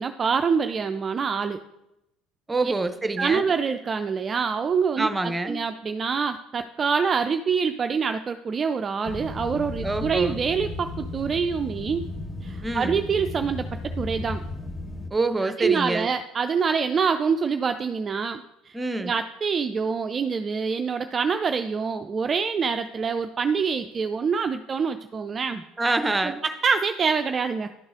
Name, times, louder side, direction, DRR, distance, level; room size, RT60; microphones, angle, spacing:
voice 1, 0.0-1.6 2.6-2.7 3.2-12.0 12.4-14.4 15.4-25.6 26.4-27.7, right 5 dB, 35° right, 8 dB, 0.3 m, -26 dB
voice 2, 2.5-3.4 5.0-5.6 9.8-10.4 12.6-13.0 15.1-16.1 18.7-19.1 25.8-26.4, right 2 dB, 15° right, 10 dB, 0.7 m, -26 dB
sound 1, 9.1-15.1, left 2 dB, 30° left, 1.0 m, -34 dB
11.5 x 3.9 x 3.7 m, 0.89 s
hypercardioid pair, 65°, 0 cm